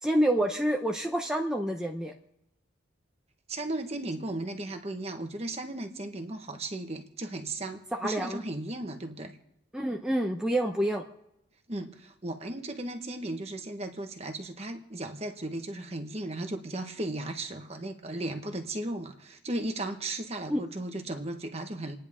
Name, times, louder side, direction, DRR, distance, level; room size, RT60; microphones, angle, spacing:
voice 1, 0.0-2.1 7.9-8.4 9.7-11.0 20.5-20.6, right 1 dB, 5° right, 1 dB, 0.7 m, -28 dB
voice 2, 3.5-9.3 11.7-22.0, right 2 dB, 30° right, 5 dB, 1.3 m, -36 dB
29.5 x 10.0 x 3.7 m, 0.84 s
head